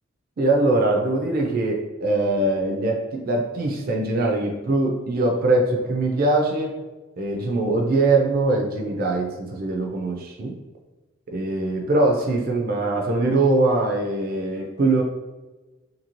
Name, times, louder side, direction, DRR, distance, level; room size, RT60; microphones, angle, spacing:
voice 1, 0.4-6.7 7.2-10.5 11.3-15.0, right 2 dB, 45° right, 1 dB, 0.4 m, -22 dB
2.7 x 2.6 x 2.9 m, 1.1 s
head